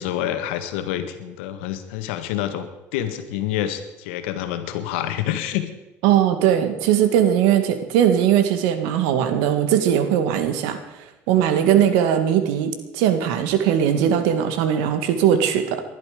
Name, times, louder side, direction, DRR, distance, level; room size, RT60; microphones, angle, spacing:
voice 1, 0.0-2.7 2.9-5.6, left 11 dB, 85° left, 8 dB, 1.7 m, -27 dB
voice 2, 6.0-10.8 11.3-15.8, right 9 dB, 80° right, 9 dB, 2.0 m, -19 dB
20.5 x 11.5 x 5.1 m, 0.97 s
supercardioid pair, 90°, 6 cm